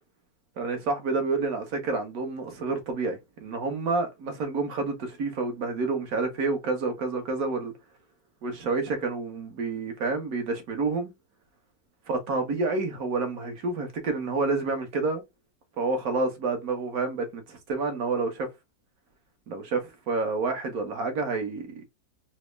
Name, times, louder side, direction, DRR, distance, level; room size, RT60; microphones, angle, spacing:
voice 1, 0.6-7.7 8.4-11.1 12.1-15.2 15.8-18.5 19.5-21.9, right 3 dB, 60° right, 1.3 m, -29 dB
4.1 x 2.0 x 3.2 m
omnidirectional pair, 1.8 m